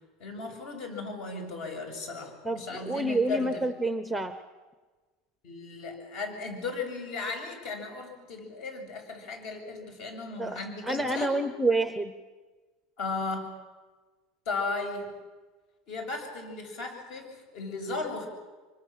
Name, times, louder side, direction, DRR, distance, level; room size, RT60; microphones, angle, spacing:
voice 1, 0.2-3.7 5.4-11.4 13.0-13.6 14.5-15.1 15.9-18.3, left 3 dB, 50° left, 4 dB, 7.4 m, -36 dB
voice 2, 2.4-4.3 10.4-12.1, right 2 dB, ahead, 9 dB, 0.9 m, -28 dB
26.0 x 25.0 x 7.6 m, 1.3 s
cardioid pair, 165°, 0 cm